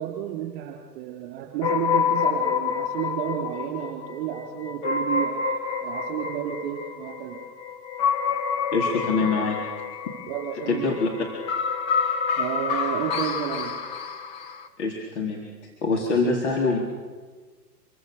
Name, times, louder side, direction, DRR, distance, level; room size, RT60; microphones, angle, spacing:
voice 1, 0.0-5.4 5.8-7.4 10.3-10.9 12.4-13.7, right 11 dB, 30° right, -2 dB, 4.8 m, -31 dB
sound 1, 1.6-14.7, left 6 dB, 10° left, 0.8 m, -28 dB
voice 2, 8.7-9.6 10.7-11.1 14.8-16.8, left 3 dB, 45° left, -2 dB, 4.2 m, -24 dB
27.5 x 23.5 x 6.9 m, 1.4 s
figure-of-eight pair, 125°, 48 cm